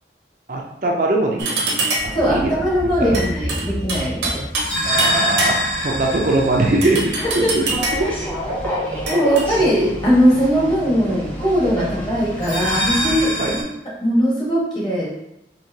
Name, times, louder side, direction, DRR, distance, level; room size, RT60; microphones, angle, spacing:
voice 1, 0.5-1.8 2.2-2.5 3.0-3.2 4.2-4.3 4.8-8.1 8.4-9.0 11.8-11.9 13.4-13.5, right 2 dB, 50° right, 0 dB, 0.5 m, -22 dB
sound 1, 1.4-2.2 3.1-4.7 5.0-5.9 6.8-8.1 9.1-9.5, right 2 dB, 85° right, 0.9 m, -24 dB
sound 2, 1.9-8.6 12.3-13.6, equal, 85° left, 1.4 m, -26 dB
voice 2, 2.1-4.4 7.2-7.5 9.1-13.7 14.0-15.1, equal, 25° left, -6 dB, 1.2 m, -19 dB
sound 3, 7.7-13.2, left 1 dB, 10° left, 0.6 m, -30 dB
4.5 x 2.8 x 2.7 m, 0.87 s
head